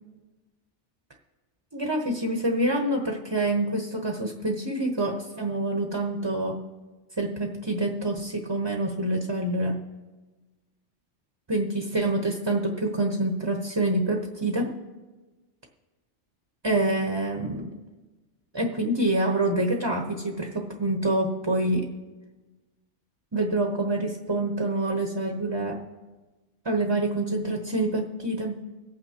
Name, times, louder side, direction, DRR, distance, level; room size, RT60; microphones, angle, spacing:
voice 1, 1.7-6.6 7.2-9.8 11.5-14.8 16.6-17.7 18.5-21.9 23.3-25.8 26.6-28.6, right 1 dB, 25° right, 2 dB, 0.8 m, -26 dB
25.0 x 8.9 x 2.8 m, 1.2 s
omnidirectional pair, 1.3 m